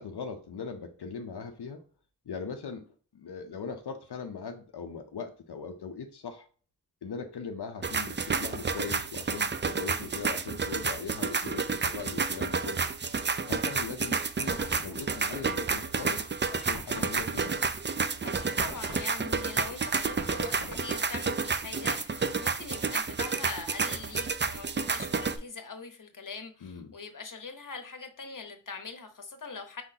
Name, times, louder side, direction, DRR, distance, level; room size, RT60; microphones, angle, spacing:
voice 1, 0.0-1.8 2.3-6.5 7.0-12.9 13.5-17.6 26.6-26.9, left 5 dB, 85° left, 5 dB, 0.6 m, -40 dB
sound 1, 7.8-25.4, right 5 dB, 30° right, 0.4 m, -30 dB
sound 2, 13.9-16.0 16.4-16.5 16.7-21.6, equal, 65° right, 2.3 m, -43 dB
voice 2, 18.2-29.8, left 4 dB, 55° left, 7 dB, 0.9 m, -42 dB
4.4 x 3.8 x 2.7 m, 0.40 s
wide cardioid pair, 55°, 39 cm